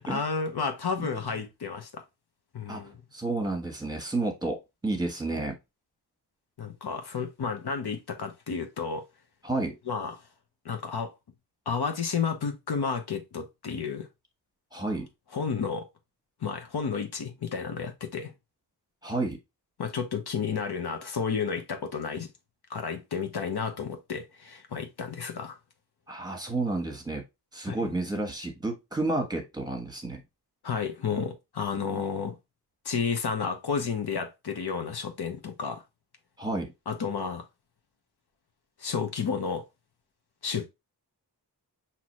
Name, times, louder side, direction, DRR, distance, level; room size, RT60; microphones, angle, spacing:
voice 1, 0.1-2.0 2.5-3.0 6.6-9.1 9.9-10.2 10.6-11.1 11.7-14.1 15.3-15.9 16.4-18.3 19.8-22.3 22.7-25.6 27.7-27.9 30.6-32.3 32.8-35.8 36.9-37.4 38.8-39.6 40.4-40.7, left 5 dB, 70° left, 1.0 m, -31 dB
voice 2, 3.1-5.6 9.4-9.7 14.7-15.1 19.0-19.4 26.1-27.2 27.5-30.2 31.7-32.0 36.4-36.7, right 2 dB, 10° right, 1.3 m, -31 dB
5.9 x 2.9 x 3.0 m
wide cardioid pair, 120°, 40 cm